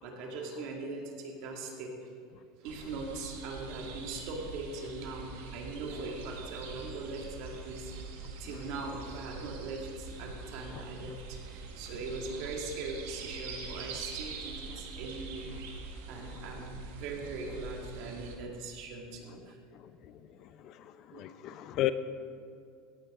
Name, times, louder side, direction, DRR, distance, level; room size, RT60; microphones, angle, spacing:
voice 1, 0.0-1.9 2.6-7.9 8.4-15.5 16.1-19.6 21.1-21.3, right 3 dB, 65° right, 0 dB, 2.2 m, -40 dB
sound 1, 2.7-18.4, right 4 dB, 85° right, 1.5 m, -44 dB
voice 2, 21.1-21.9, left 15 dB, 55° left, 12 dB, 0.5 m, -32 dB
16.5 x 9.0 x 3.7 m, 2.3 s
supercardioid pair, 110°, 0 cm